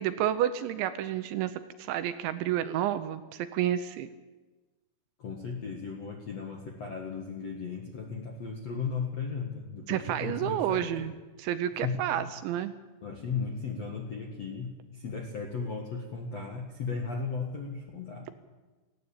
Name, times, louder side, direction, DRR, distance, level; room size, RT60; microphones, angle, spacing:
voice 1, 0.0-4.1 9.9-11.1 11.4-12.8, right 11 dB, 80° right, 11 dB, 2.9 m, -30 dB
voice 2, 5.2-11.1 11.8-12.0 13.0-18.3, left 5 dB, 60° left, 1 dB, 1.7 m, -36 dB
19.0 x 16.0 x 8.8 m, 1.2 s
omnidirectional pair, 5.7 m